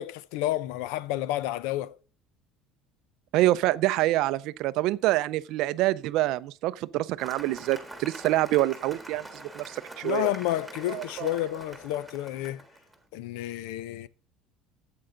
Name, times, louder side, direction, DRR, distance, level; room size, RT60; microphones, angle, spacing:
voice 1, 0.0-1.9 10.0-12.6 13.1-14.1, left 14 dB, 70° left, 0.6 m, -30 dB
voice 2, 3.3-10.3 10.9-11.3, right 16 dB, 50° right, 0.5 m, -26 dB
Cheering / Applause, 7.2-12.9, right 2 dB, ahead, 1.4 m, -44 dB
12.0 x 8.5 x 3.8 m
cardioid pair, 180°, 0 cm